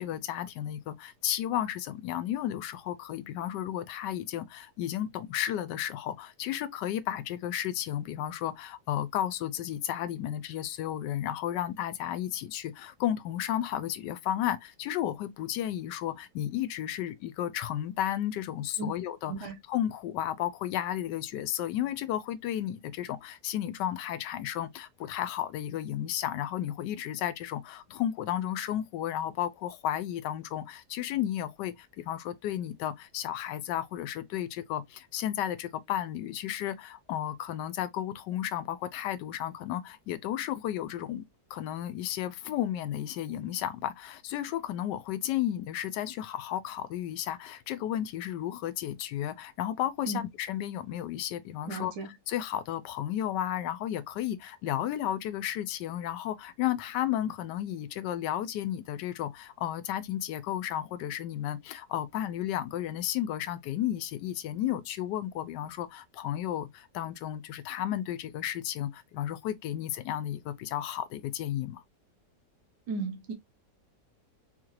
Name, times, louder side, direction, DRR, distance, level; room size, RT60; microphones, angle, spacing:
voice 1, 0.0-41.2 41.5-71.8, left 11 dB, 80° left, 1.2 m, -33 dB
voice 2, 51.7-52.1 72.9-73.3, right 3 dB, 70° right, 1.5 m, -35 dB
4.1 x 2.4 x 3.1 m
omnidirectional pair, 1.9 m